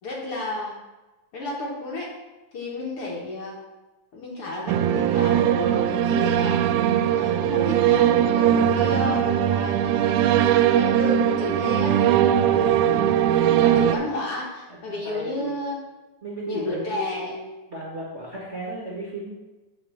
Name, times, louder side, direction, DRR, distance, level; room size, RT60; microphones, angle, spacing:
voice 1, 0.0-0.8 1.3-2.1 2.5-3.6 4.1-6.6 7.2-12.2 12.5-15.8 16.5-17.5, left 2 dB, 55° left, -3 dB, 2.0 m, -32 dB
sound 1, 4.7-14.0, right 10 dB, 90° right, 2.1 m, -20 dB
voice 2, 14.7-15.5 16.2-17.0 17.7-19.3, right 1 dB, 35° right, -5 dB, 1.2 m, -34 dB
8.0 x 4.5 x 7.1 m, 1.1 s
omnidirectional pair, 3.5 m